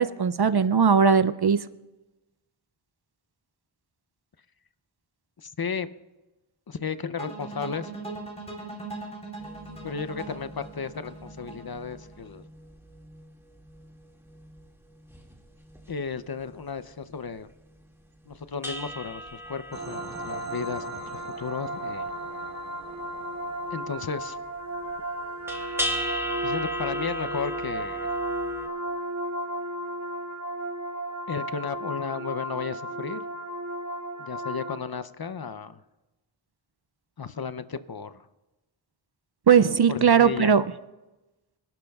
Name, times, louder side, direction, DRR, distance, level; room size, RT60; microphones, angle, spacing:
voice 1, 0.0-1.6 39.5-40.6, right 6 dB, 55° right, 12 dB, 0.5 m, -19 dB
voice 2, 5.4-5.9 6.7-7.9 9.8-12.4 15.9-17.5 18.3-21.0 21.4-22.1 23.7-24.4 26.4-28.2 31.3-33.2 34.2-35.8 37.2-38.3 39.9-40.5, left 5 dB, 50° left, 13 dB, 0.6 m, -34 dB
sound 1, 7.2-12.3, right 2 dB, 15° left, 3.4 m, -40 dB
sound 2, 9.4-16.6 16.9-17.5 17.7-17.8 18.2-28.7, equal, 5° right, 2.1 m, -39 dB
sound 3, 19.7-34.8, right 1 dB, 35° right, 1.2 m, -34 dB
26.5 x 12.0 x 2.4 m, 1.1 s
wide cardioid pair, 40°, 48 cm